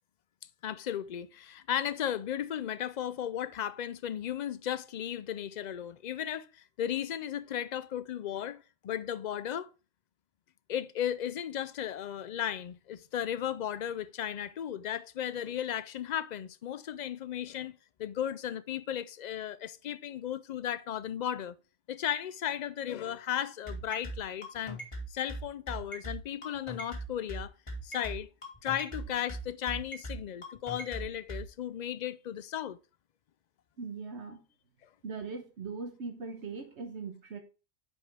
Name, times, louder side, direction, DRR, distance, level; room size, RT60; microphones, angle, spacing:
voice 1, 0.6-9.7 10.7-21.6 21.9-24.8 25.1-27.5 27.8-28.3 28.6-32.8, left 10 dB, 60° left, 0.4 m, -35 dB
sound 1, 23.7-31.4, right 1 dB, 25° left, 2.6 m, -39 dB
voice 2, 33.8-34.4 35.0-37.4, right 4 dB, 70° right, 1.3 m, -40 dB
9.7 x 5.3 x 3.4 m
omnidirectional pair, 1.2 m